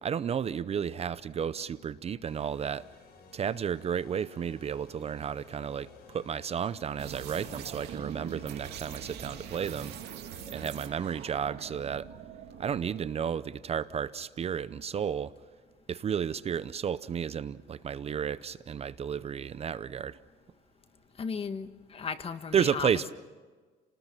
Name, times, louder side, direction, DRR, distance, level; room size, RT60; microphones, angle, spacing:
voice 1, 0.0-2.8 3.3-10.0 10.5-12.1 12.6-15.3 15.9-20.2 22.5-23.1, right 7 dB, 40° right, 16 dB, 0.6 m, -32 dB
sound 1, 2.3-11.4, left 6 dB, 70° left, 5.7 m, -55 dB
sound 2, 7.0-13.2, right 9 dB, 80° right, 2.3 m, -43 dB
voice 2, 21.2-23.1, left 5 dB, 35° left, 10 dB, 1.5 m, -36 dB
29.5 x 19.5 x 6.0 m, 1.4 s
cardioid pair, 110°, 17 cm